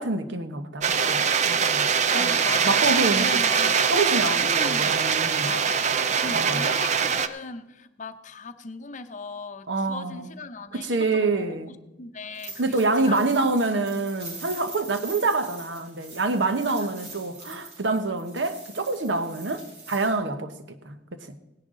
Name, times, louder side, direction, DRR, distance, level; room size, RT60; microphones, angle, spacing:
voice 1, 0.0-1.9 2.2-2.3 2.6-3.3 3.9-5.5 6.3-6.7 9.7-10.3 10.7-11.8 12.6-21.4, right 3 dB, 80° right, 1.0 m, -26 dB
sound 1, 0.8-7.3, right 6 dB, 40° right, 0.5 m, -23 dB
voice 2, 2.1-3.9 4.4-5.0 5.4-5.9 6.2-13.5 16.6-16.9, left 3 dB, 45° left, 0.7 m, -38 dB
sound 2, 12.3-20.1, right 3 dB, 65° right, 4.6 m, -43 dB
17.5 x 10.5 x 3.8 m
head